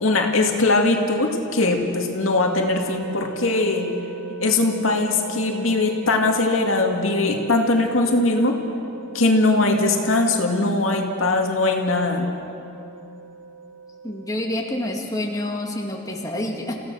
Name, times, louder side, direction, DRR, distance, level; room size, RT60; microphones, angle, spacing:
voice 1, 0.0-3.9 4.4-8.6 9.1-12.3, left 2 dB, 80° left, 2 dB, 2.3 m, -20 dB
sound 1, 2.4-14.8, right 4 dB, 70° right, 2.3 m, -39 dB
voice 2, 14.0-16.8, left 1 dB, 20° left, 0 dB, 2.0 m, -28 dB
29.5 x 16.5 x 6.4 m, 2.7 s
head